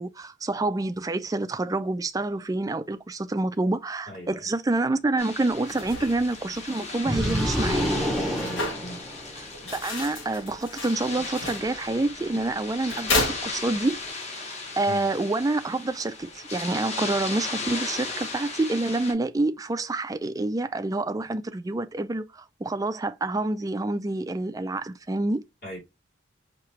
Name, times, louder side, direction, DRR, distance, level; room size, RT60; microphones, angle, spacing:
voice 1, 0.0-7.9 9.4-9.5 9.7-14.0 14.3-25.4, right 2 dB, 20° right, 0.3 m, -27 dB
voice 2, 4.1-4.5 8.3-9.0 14.9-15.1 25.6-25.8, left 1 dB, 55° left, 3.2 m, -39 dB
sound 1, 5.2-19.1, left 3 dB, 35° left, 1.2 m, -37 dB
sound 2, 5.5-14.1, left 2 dB, 85° left, 1.6 m, -34 dB
sound 3, 7.0-9.5, equal, ahead, 0.7 m, -27 dB
4.8 x 2.9 x 3.2 m
head